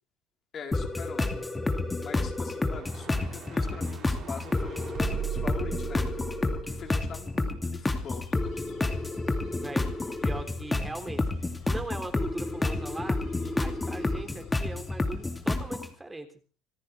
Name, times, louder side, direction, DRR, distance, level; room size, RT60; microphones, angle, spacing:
voice 1, 0.5-1.4 2.0-6.2 6.6-8.3, left 6 dB, 45° left, 3 dB, 4.2 m, -43 dB
sound 1, 0.7-15.9, left 2 dB, 15° left, 2.5 m, -30 dB
sound 2, 2.6-7.9, right 10 dB, 50° right, 6.0 m, -39 dB
sound 3, 7.9-15.5, left 9 dB, 60° left, 4.4 m, -50 dB
voice 2, 9.5-9.9 10.2-11.2 11.7-16.3, right 2 dB, 15° right, 6 dB, 3.6 m, -40 dB
27.0 x 14.0 x 3.5 m, 0.37 s
supercardioid pair, 85°, 0 cm